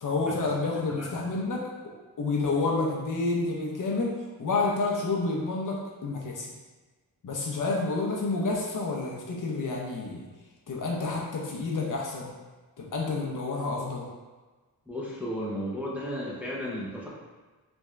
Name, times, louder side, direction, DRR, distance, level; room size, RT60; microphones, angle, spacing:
voice 1, 0.0-4.1 4.4-6.5 7.2-10.3 10.7-12.3 12.8-14.0, left 3 dB, 55° left, -2 dB, 0.8 m, -29 dB
voice 2, 1.0-1.3 14.9-17.1, equal, 5° right, -6 dB, 0.8 m, -34 dB
3.5 x 3.5 x 3.2 m, 1.3 s
wide cardioid pair, 125°, 38 cm